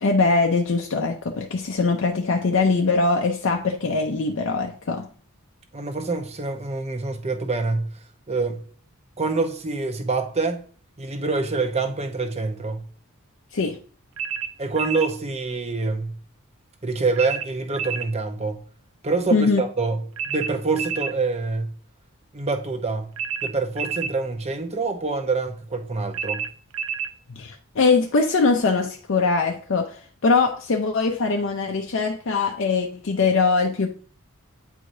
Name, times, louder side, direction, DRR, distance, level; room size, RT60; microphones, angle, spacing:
voice 1, 0.0-5.1 13.5-13.8 19.3-19.6 27.3-33.9, left 4 dB, 55° left, 0.5 m, -22 dB
voice 2, 5.7-7.9 8.3-8.6 9.2-10.6 11.0-12.8 14.6-16.2 16.8-18.6 19.0-21.7 22.3-23.1 23.4-26.4, right 3 dB, 30° right, 0.8 m, -26 dB
sound 1, 14.2-15.1 17.2-18.1 20.2-21.2 23.2-24.2 26.1-27.1, right 7 dB, 60° right, 0.4 m, -29 dB
8.8 x 4.7 x 2.6 m
head